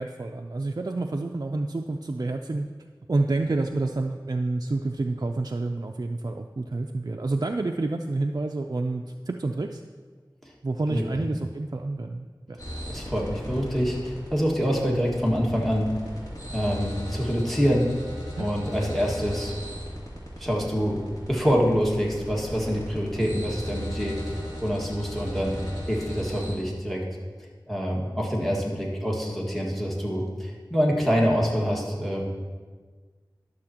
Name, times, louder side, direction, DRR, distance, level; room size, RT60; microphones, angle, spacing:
voice 1, 0.0-2.7 3.1-9.8 10.6-12.6 18.3-18.5, right 2 dB, 50° right, 3 dB, 0.4 m, -29 dB
sound 1, 12.6-26.5, equal, 50° left, 2.6 m, -37 dB
voice 2, 12.9-15.9 16.5-17.9 18.4-19.5 20.4-24.4 24.6-25.6 25.9-27.0 27.7-32.3, equal, ahead, -3 dB, 1.7 m, -26 dB
12.0 x 6.7 x 2.9 m, 1.5 s
wide cardioid pair, 45°, 8 cm